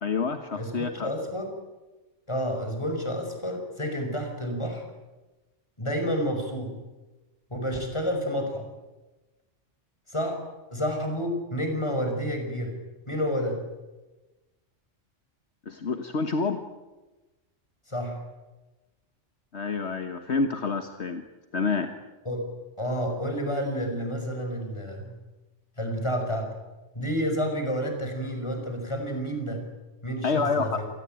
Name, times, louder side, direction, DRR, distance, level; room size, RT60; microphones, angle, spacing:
voice 1, 0.0-1.1 15.6-16.6 19.5-21.2 21.5-21.9 30.2-30.8, left 4 dB, 60° left, 7 dB, 1.7 m, -28 dB
voice 2, 0.5-1.5 2.3-4.8 5.8-6.7 7.5-8.7 10.1-10.4 10.7-12.7 13.1-13.6 17.9-18.2 22.3-22.5 22.8-25.1 25.8-26.5 27.0-29.6 30.0-30.7, equal, 25° left, 4 dB, 5.5 m, -29 dB
27.5 x 20.0 x 9.0 m, 1.1 s
omnidirectional pair, 1.3 m